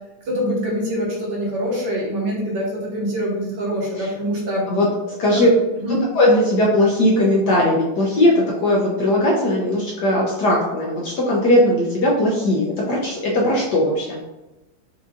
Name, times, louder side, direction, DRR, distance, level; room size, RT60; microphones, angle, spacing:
voice 1, 0.3-4.7 5.3-6.0, equal, 60° right, -4 dB, 1.7 m, -24 dB
voice 2, 6.1-14.2, left 1 dB, 65° left, -3 dB, 1.1 m, -18 dB
4.9 x 2.7 x 3.6 m, 0.99 s
omnidirectional pair, 2.3 m